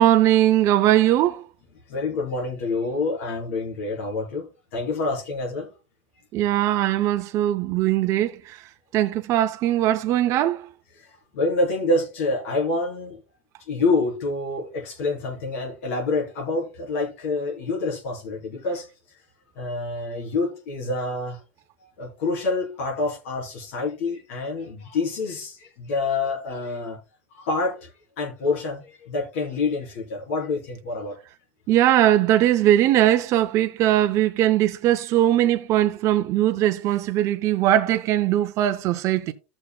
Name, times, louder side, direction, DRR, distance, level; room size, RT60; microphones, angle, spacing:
voice 1, 0.0-1.4 6.3-8.6 8.9-10.7 31.7-39.3, right 12 dB, 45° right, 0.6 m, -20 dB
voice 2, 1.9-5.7 11.0-13.2 13.7-18.9 19.5-21.4 22.0-27.0 27.3-31.2, left 3 dB, 85° left, 3.2 m, -27 dB
14.5 x 6.3 x 2.2 m
supercardioid pair, 125°, 7 cm